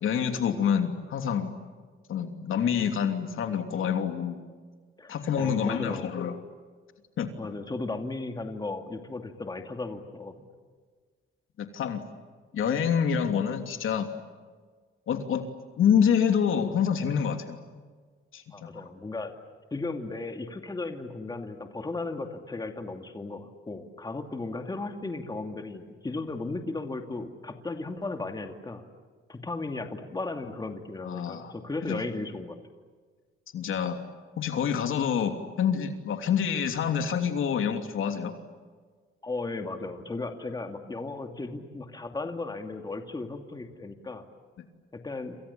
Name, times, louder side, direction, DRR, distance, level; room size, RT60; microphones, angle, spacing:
voice 1, 0.0-1.6 2.1-4.4 5.1-6.3 7.2-7.3 11.6-12.0 12.5-14.1 15.1-15.4 15.8-17.6 18.3-18.7 31.0-31.5 31.8-32.0 33.5-34.0 34.4-38.3, left 7 dB, 75° left, 6 dB, 3.0 m, -27 dB
voice 2, 5.0-6.1 7.4-10.4 18.5-19.3 19.7-28.9 29.3-32.6 39.2-44.3 44.9-45.4, left 3 dB, 20° left, 5 dB, 2.5 m, -35 dB
28.5 x 28.0 x 7.2 m, 1.5 s
cardioid pair, 125°, 21 cm